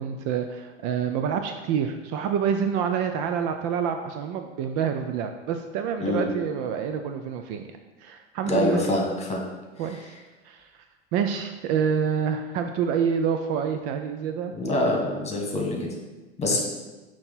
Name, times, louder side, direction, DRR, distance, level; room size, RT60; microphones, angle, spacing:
voice 1, 0.0-7.6 8.0-8.8 9.8-10.0 10.4-10.7 11.1-14.5 16.5-16.6, right 7 dB, 45° right, 6 dB, 0.5 m, -27 dB
voice 2, 8.5-9.4 14.6-15.9 16.4-16.6, left 1 dB, 20° left, 0 dB, 1.6 m, -25 dB
6.4 x 3.0 x 5.6 m, 1.2 s
hypercardioid pair, 85°, 34 cm